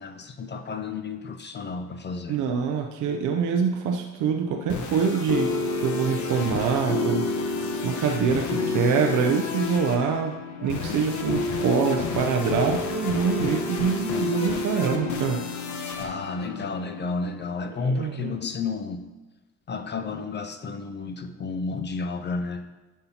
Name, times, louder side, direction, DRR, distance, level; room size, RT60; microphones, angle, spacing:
voice 1, 0.0-2.4 16.0-19.1 19.7-22.7, left 4 dB, 35° left, 8 dB, 0.5 m, -31 dB
voice 2, 2.3-5.5 5.8-10.3 10.6-15.5 15.7-16.1 17.8-18.3, right 6 dB, 80° right, 3 dB, 0.6 m, -25 dB
sound 1, 4.5-17.3, left 3 dB, 70° left, 1.0 m, -30 dB
11.0 x 5.5 x 2.8 m, 1.2 s
cardioid pair, 90°, 30 cm